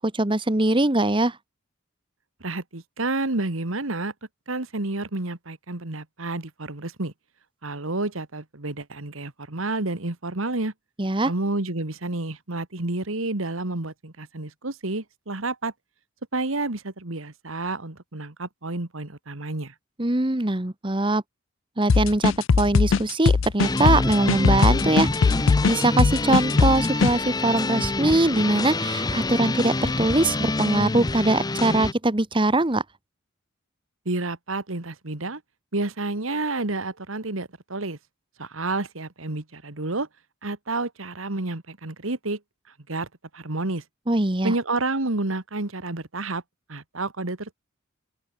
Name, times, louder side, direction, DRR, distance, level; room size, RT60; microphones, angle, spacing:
voice 1, 0.0-1.4 11.0-11.3 20.0-21.2 21.8-32.8 44.1-44.5, right 2 dB, 25° right, 1.3 m, -22 dB
voice 2, 2.4-4.1 4.5-7.1 7.6-10.7 11.2-15.7 16.3-19.7 34.1-35.4 35.7-38.0 38.4-40.1 40.4-42.4 42.9-43.1 43.3-43.8 44.4-46.4 46.7-47.5, right 2 dB, 85° right, 2.0 m, -30 dB
sound 1, 21.9-27.1, left 5 dB, 70° left, 0.5 m, -20 dB
sound 2, 23.6-31.9, left 2 dB, 20° left, 0.7 m, -26 dB
open air
head